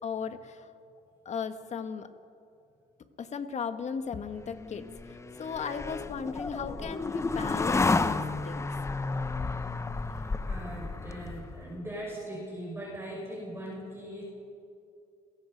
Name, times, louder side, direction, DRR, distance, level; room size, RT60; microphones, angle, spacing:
voice 1, 0.0-0.7 1.2-2.1 3.2-8.7, left 6 dB, 40° left, 9 dB, 1.5 m, -36 dB
sound 1, 4.4-11.8, left 3 dB, 15° left, 0.8 m, -32 dB
voice 2, 10.1-14.2, right 1 dB, 15° right, -3 dB, 5.7 m, -40 dB
30.0 x 17.0 x 5.2 m, 2.5 s
cardioid pair, 110°, 17 cm